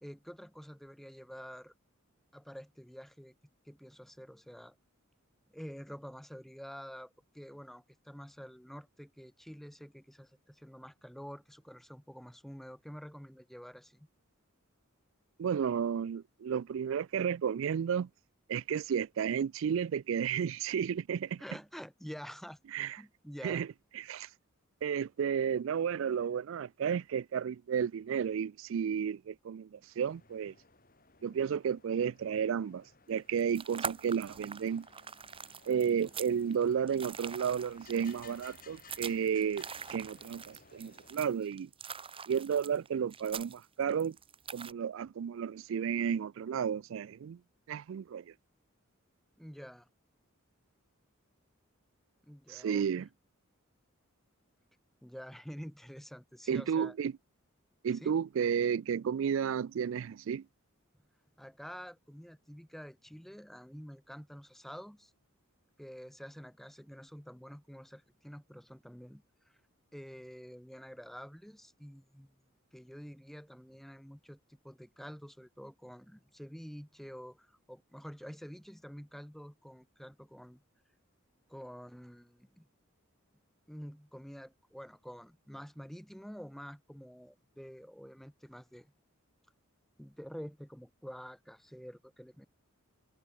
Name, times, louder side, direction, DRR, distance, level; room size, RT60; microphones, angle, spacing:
voice 1, 0.0-1.7 2.3-3.3 3.6-4.8 5.5-14.1 21.4-22.6 23.0-23.6 49.4-49.9 52.2-53.1 55.0-57.0 57.9-58.2 61.4-65.1 65.8-69.6 69.9-72.3 72.7-80.6 81.5-82.7 83.7-88.9 90.0-92.5, equal, ahead, 1.2 m, -48 dB
voice 2, 15.4-18.1 18.5-21.4 22.7-23.0 23.4-23.7 23.9-24.3 24.8-30.5 31.2-34.9 35.7-41.7 42.3-44.2 44.5-47.4 47.7-48.3 52.5-53.1 56.5-57.1 57.8-60.4, right 7 dB, 65° right, 0.3 m, -32 dB
sound 1, 30.0-41.3, left 4 dB, 40° left, 7.3 m, -60 dB
sound 2, 33.2-44.7, right 6 dB, 25° right, 1.4 m, -44 dB
head